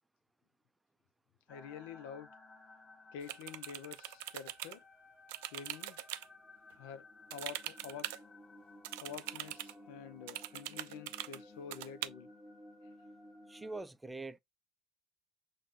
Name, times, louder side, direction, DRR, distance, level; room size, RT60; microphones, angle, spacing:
voice 1, 1.5-2.3 3.1-4.8 5.5-6.0 6.8-7.0 7.3-8.1 9.0-12.3, left 7 dB, 75° left, 0.6 m, -48 dB
sound 1, 1.5-13.8, left 2 dB, 20° left, 1.2 m, -56 dB
sound 2, 3.2-4.8 5.3-6.3 7.3-8.2 8.8-9.7 10.3-11.4 11.7-12.1, right 16 dB, 75° right, 0.4 m, -42 dB
voice 2, 13.5-14.4, right 2 dB, 10° right, 0.4 m, -43 dB
6.3 x 2.2 x 3.6 m
hypercardioid pair, 80°, 0 cm